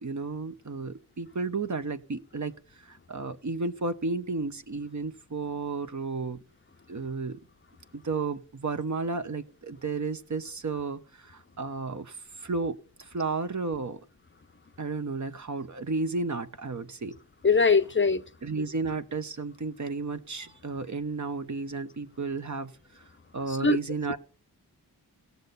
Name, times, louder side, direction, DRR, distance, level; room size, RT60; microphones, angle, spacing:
voice 1, 0.0-2.5 2.8-6.4 6.9-7.4 7.9-14.0 14.8-17.2 18.4-22.7 23.3-24.2, right 3 dB, 45° right, 1.0 m, -33 dB
voice 2, 17.4-18.2 23.6-23.8, left 4 dB, 30° left, 0.6 m, -21 dB
18.0 x 6.9 x 4.0 m
cardioid pair, 45°, 40 cm